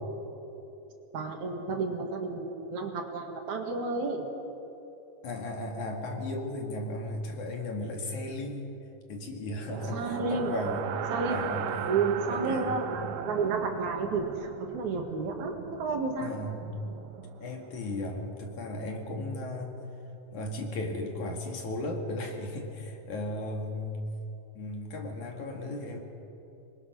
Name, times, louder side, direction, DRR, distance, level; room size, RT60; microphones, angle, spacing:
voice 1, 1.1-4.2 9.9-10.5 11.1-11.4 11.9-16.3, right 4 dB, 65° right, 2 dB, 3.2 m, -31 dB
voice 2, 5.2-8.7 9.1-10.9 11.3-11.9 12.3-12.8 16.2-16.7 17.4-19.8 20.3-24.0 24.6-26.0, left 1 dB, 65° left, 2 dB, 3.5 m, -35 dB
sound 1, 9.6-17.7, right 9 dB, 90° right, 2.6 m, -38 dB
26.5 x 21.5 x 6.2 m, 3.0 s
omnidirectional pair, 3.9 m